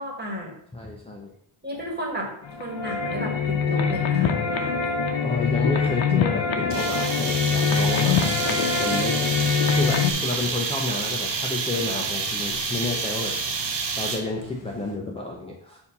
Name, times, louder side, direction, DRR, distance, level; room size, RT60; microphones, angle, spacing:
voice 1, 0.0-0.5 1.6-2.3 2.6-4.8, equal, 20° right, -1 dB, 1.5 m, -33 dB
voice 2, 0.7-1.3 5.2-9.2 9.7-13.3 14.0-15.8, left 2 dB, 15° left, -1 dB, 0.6 m, -30 dB
sound 1, 2.4-10.1, left 6 dB, 80° left, 0.8 m, -24 dB
sound 2, 6.7-14.4, right 5 dB, 65° right, 0.9 m, -28 dB
sound 3, 9.1-15.0, left 5 dB, 65° left, 1.3 m, -44 dB
7.0 x 2.8 x 5.2 m, 0.65 s
wide cardioid pair, 170°, 46 cm